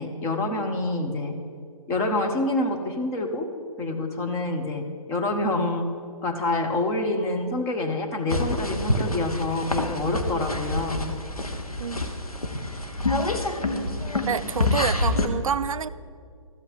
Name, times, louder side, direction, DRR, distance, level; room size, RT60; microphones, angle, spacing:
voice 1, 0.0-1.4 1.9-3.5 3.8-5.9 6.2-11.1, left 2 dB, 15° left, 3 dB, 0.9 m, -27 dB
sound 1, 8.3-15.3, left 2 dB, 85° left, 1.1 m, -27 dB
voice 2, 14.3-15.9, right 7 dB, 65° right, 14 dB, 0.5 m, -28 dB
13.0 x 5.7 x 8.2 m, 2.2 s
figure-of-eight pair, 130°, 18 cm